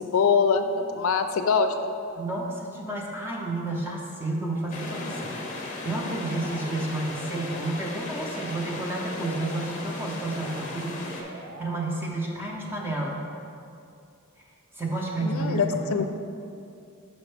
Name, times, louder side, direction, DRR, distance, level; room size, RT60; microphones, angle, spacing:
voice 1, 0.0-1.9 15.2-16.1, left 5 dB, 70° left, 8 dB, 0.4 m, -24 dB
voice 2, 2.2-13.2 14.7-15.8, right 2 dB, 10° right, -2 dB, 0.7 m, -31 dB
sound 1, 4.7-11.2, left 2 dB, 35° left, 0.7 m, -37 dB
Alarm, 6.1-12.1, right 2 dB, 55° right, 0.6 m, -44 dB
6.2 x 5.3 x 3.3 m, 2.5 s
head